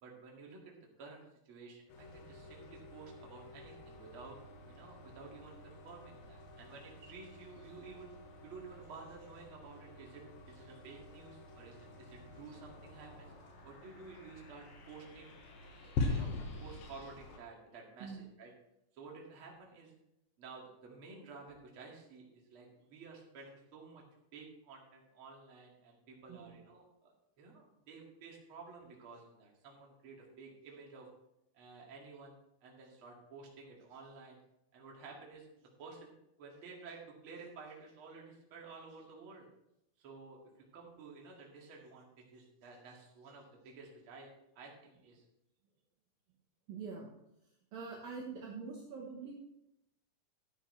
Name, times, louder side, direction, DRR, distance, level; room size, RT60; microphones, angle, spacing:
voice 1, 0.0-4.4 4.7-8.1 8.4-13.3 13.6-15.3 15.8-16.3 16.6-18.5 18.9-19.9 20.4-24.0 24.3-27.1 27.4-31.1 31.5-32.3 32.6-34.4 34.7-36.1 36.4-39.5 40.0-44.3 44.6-45.2, right 4 dB, 40° right, -2 dB, 2.2 m, -52 dB
sound 1, 1.9-17.4, left 3 dB, 65° left, 2.8 m, -45 dB
sound 2, 12.1-17.1, left 3 dB, 80° left, 4.0 m, -60 dB
voice 2, 26.3-26.6 46.7-47.1 47.4-49.4, right 5 dB, 65° right, -2 dB, 2.5 m, -45 dB
13.0 x 9.9 x 3.3 m, 0.84 s
omnidirectional pair, 5.1 m